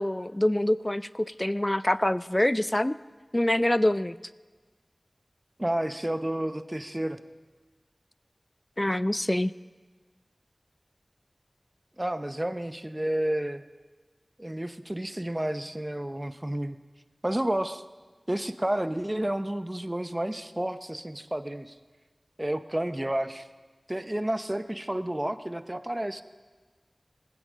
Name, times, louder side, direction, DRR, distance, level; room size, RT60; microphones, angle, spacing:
voice 1, 0.0-3.0 3.3-4.2 8.8-9.5, left 1 dB, 25° left, 17 dB, 0.4 m, -25 dB
voice 2, 5.6-7.2 12.0-13.6 14.4-16.8 17.2-17.8 18.3-21.7 22.4-23.5 23.9-26.2, right 1 dB, 20° right, 11 dB, 0.7 m, -30 dB
19.0 x 16.5 x 3.7 m, 1.4 s
wide cardioid pair, 45°, 0 cm